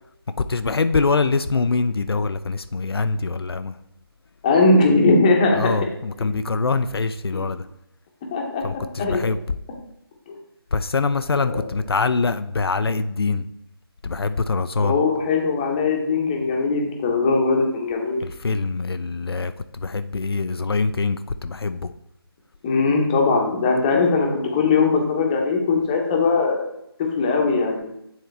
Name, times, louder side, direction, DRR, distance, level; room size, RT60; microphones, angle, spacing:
voice 1, 0.4-3.8 5.6-7.7 8.6-9.6 10.7-13.5 14.0-15.0 18.2-21.9, left 4 dB, 70° left, 10 dB, 0.4 m, -24 dB
voice 2, 4.4-5.7 7.3-7.4 8.3-9.3 10.3-10.4 11.5-11.6 14.8-18.2 22.6-26.6 27.2-27.9, left 3 dB, 15° left, 1 dB, 0.8 m, -20 dB
9.1 x 3.8 x 3.3 m, 0.81 s
figure-of-eight pair, 155°, 13 cm